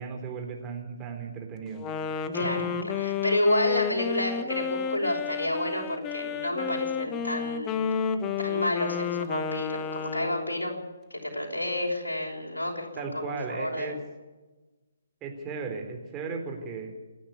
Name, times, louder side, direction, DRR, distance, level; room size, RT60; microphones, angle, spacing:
voice 1, 0.0-1.9 2.4-2.6 13.0-14.0 15.2-16.9, right 5 dB, 20° right, 2 dB, 4.0 m, -36 dB
Wind instrument woodwind instrument, 1.7-10.7, left 7 dB, 20° left, 1.3 m, -31 dB
voice 2, 2.3-7.8 8.4-10.8 11.1-13.9, left 1 dB, 80° left, -1 dB, 5.7 m, -30 dB
28.5 x 10.0 x 9.7 m, 1.2 s
figure-of-eight pair, 135°, 0 cm